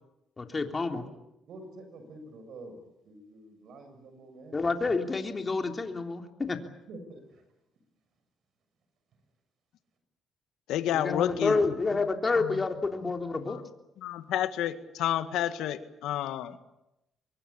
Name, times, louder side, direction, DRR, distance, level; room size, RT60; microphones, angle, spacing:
voice 1, 0.4-1.0 4.5-6.6 10.9-13.6, left 3 dB, 30° left, 4 dB, 3.4 m, -29 dB
voice 2, 1.5-4.6 6.9-7.4, right 2 dB, 70° right, 8 dB, 7.4 m, -47 dB
voice 3, 10.7-11.6 12.4-12.5 13.5-13.6 14.0-16.6, left 11 dB, 90° left, 10 dB, 1.9 m, -30 dB
25.0 x 22.5 x 8.8 m, 0.88 s
cardioid pair, 90°, 0 cm